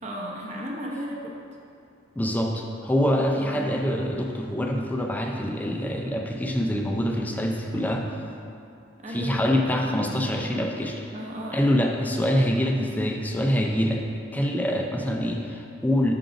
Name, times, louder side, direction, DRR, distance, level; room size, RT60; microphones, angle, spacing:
voice 1, 0.0-1.3 3.4-3.7 9.0-9.4 11.1-11.9, equal, 40° right, -3 dB, 0.8 m, -35 dB
voice 2, 2.2-8.1 9.1-11.1 11.5-14.0 14.3-16.1, equal, 10° left, 1 dB, 0.4 m, -25 dB
6.0 x 3.8 x 5.0 m, 2.5 s
head